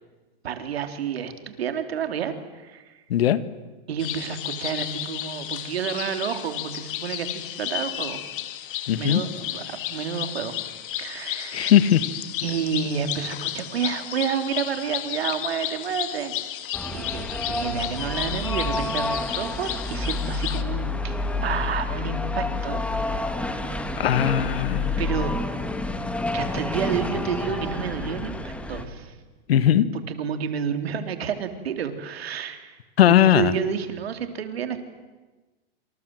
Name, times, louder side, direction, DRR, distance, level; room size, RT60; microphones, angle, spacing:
voice 1, 0.4-3.0 3.9-8.2 9.0-10.6 10.9-11.7 12.4-16.3 16.7-22.8 23.3-23.8 25.0-25.3 26.3-29.2 30.1-32.8 33.1-34.8, right 7 dB, 85° right, 8 dB, 3.6 m, -30 dB
voice 2, 3.1-3.4 8.9-9.2 11.5-12.0 24.0-25.0 29.5-29.9 33.0-33.5, left 11 dB, 80° left, 15 dB, 1.8 m, -19 dB
sound 1, 4.0-20.6, left 13 dB, 60° left, 2.2 m, -33 dB
sound 2, 16.7-28.8, left 2 dB, 5° left, 1.7 m, -29 dB
27.5 x 26.5 x 7.9 m, 1.2 s
hypercardioid pair, 145°, 30 cm